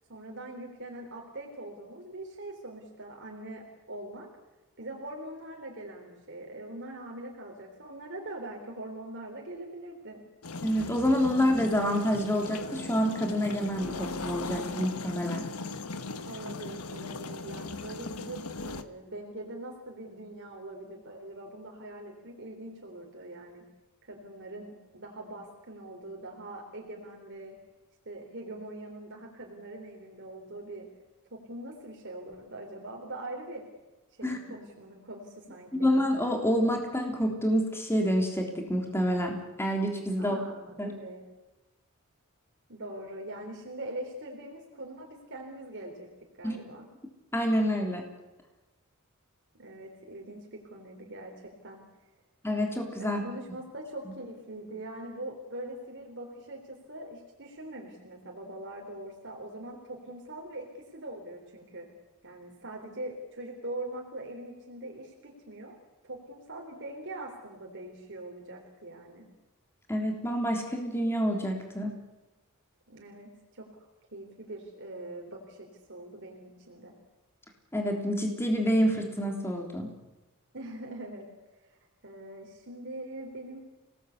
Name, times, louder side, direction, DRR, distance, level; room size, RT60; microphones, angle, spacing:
voice 1, 0.1-4.3 4.8-10.2 16.3-23.6 24.1-27.6 28.1-30.9 31.3-33.6 34.2-35.9 40.2-41.2 42.7-46.1 46.4-46.9 49.6-51.8 53.0-61.9 62.2-65.8 66.0-69.3 72.9-73.9 74.1-77.0 80.5-81.3 81.6-83.6, right 1 dB, 55° right, 0 dB, 4.1 m, -42 dB
sound 1, 10.4-18.8, left 3 dB, 85° left, 1.4 m, -38 dB
voice 2, 10.6-15.4 34.2-34.4 35.7-40.4 40.8-40.9 46.4-46.6 47.3-48.0 52.4-53.2 69.9-72.0 77.7-79.9, equal, 10° left, 2 dB, 3.5 m, -27 dB
28.5 x 19.0 x 8.4 m, 1.1 s
head